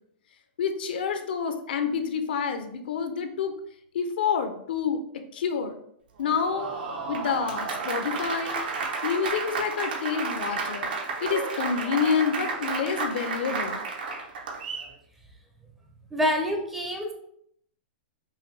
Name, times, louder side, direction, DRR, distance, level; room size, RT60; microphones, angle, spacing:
voice 1, 0.6-3.5 3.9-5.0 5.3-5.8 6.2-6.7 7.1-8.6 9.0-10.9 11.2-13.8, left 6 dB, 70° left, 7 dB, 0.6 m, -28 dB
Applause, 6.2-14.9, right 4 dB, 65° right, 0.7 m, -32 dB
voice 2, 16.1-17.1, equal, 5° right, 0 dB, 0.5 m, -26 dB
5.5 x 2.2 x 3.1 m, 0.70 s
hypercardioid pair, 165°, 5 cm